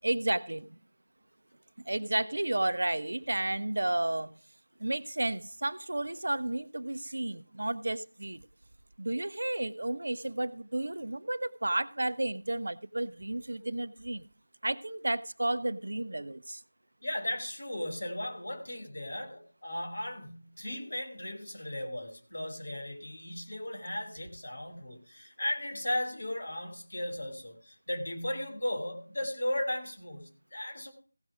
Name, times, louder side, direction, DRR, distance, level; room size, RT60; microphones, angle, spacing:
voice 1, 0.0-0.8 1.8-4.4 4.8-8.4 9.0-14.3 14.6-16.6, right 1 dB, 65° right, 0.7 m, -32 dB
voice 2, 17.0-30.9, left 1 dB, 65° left, 3.1 m, -36 dB
16.0 x 6.2 x 5.0 m
figure-of-eight pair, 170°, 0 cm